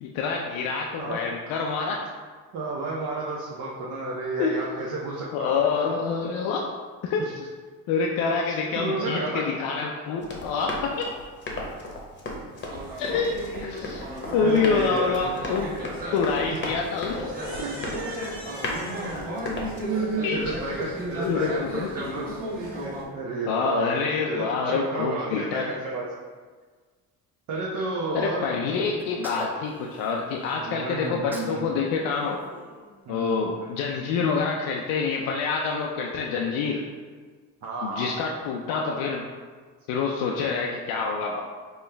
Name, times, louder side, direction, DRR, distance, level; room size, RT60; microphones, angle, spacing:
voice 1, 0.0-2.1 4.4-4.5 5.3-6.6 7.0-7.2 7.9-10.7 13.0-14.1 14.3-15.7 16.1-17.3 20.2-20.4 21.2-21.9 23.5-25.6 28.1-32.4 33.1-36.8 37.8-39.2 39.9-41.4, left 5 dB, 80° left, 0 dB, 0.5 m, -27 dB
voice 2, 2.5-5.6 8.4-9.5 14.4-15.4 16.5-16.6 19.9-22.3 22.6-24.0 24.3-26.1 27.5-28.5 28.9-29.0 30.5-31.7 33.1-33.7 34.2-34.3 37.6-38.1, right 3 dB, 55° right, -4 dB, 0.7 m, -31 dB
Run, 10.2-19.9, left 1 dB, 35° left, 0.8 m, -36 dB
sound 1, 12.5-23.0, equal, 25° right, 1.2 m, -35 dB
Sneeze, 29.0-30.6 31.0-31.6 31.9-33.4, equal, 5° right, 0.4 m, -43 dB
4.4 x 2.2 x 3.3 m, 1.5 s
cardioid pair, 95°, 34 cm